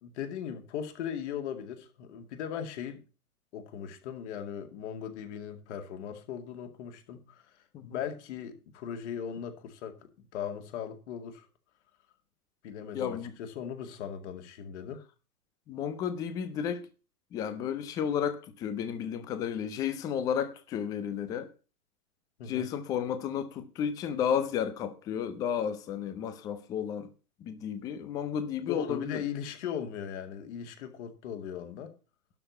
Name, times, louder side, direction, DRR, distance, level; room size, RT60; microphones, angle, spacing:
voice 1, 0.0-3.0 3.5-7.4 7.8-10.0 10.3-11.5 12.6-15.0 22.4-22.7 28.7-31.9, left 8 dB, 50° left, 2.3 m, -38 dB
voice 2, 12.9-13.4 15.7-16.8 17.3-21.5 22.5-27.1 27.4-29.2, left 8 dB, 10° left, 0.4 m, -32 dB
12.0 x 4.6 x 8.2 m
hypercardioid pair, 130°, 45 cm